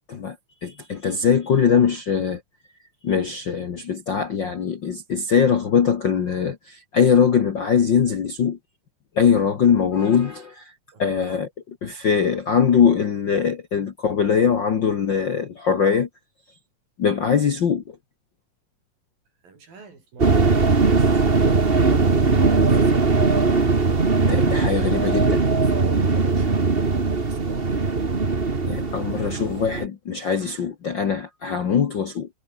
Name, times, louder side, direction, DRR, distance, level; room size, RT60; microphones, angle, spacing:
voice 1, 0.6-2.4 3.0-8.6 9.1-10.7 11.0-16.1 17.0-18.0 24.2-25.4 28.7-32.3, left 7 dB, 55° left, 1.3 m, -21 dB
voice 2, 19.4-22.2 22.5-23.4 25.6-27.9, right 4 dB, 80° right, 8.4 m, -45 dB
sound 1, 20.2-29.9, right 4 dB, 25° right, 1.2 m, -20 dB
omnidirectional pair, 4.0 m